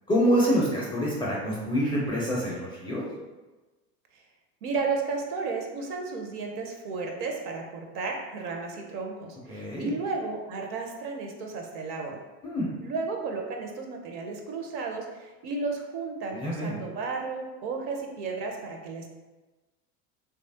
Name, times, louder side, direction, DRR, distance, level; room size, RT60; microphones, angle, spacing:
voice 1, 0.1-3.0 9.5-9.9 12.4-12.7 16.3-16.8, equal, 10° left, -6 dB, 0.4 m, -26 dB
voice 2, 4.6-12.2 12.8-19.1, right 4 dB, 45° right, 2 dB, 0.6 m, -33 dB
3.1 x 2.3 x 2.6 m, 1.2 s
hypercardioid pair, 80°, 48 cm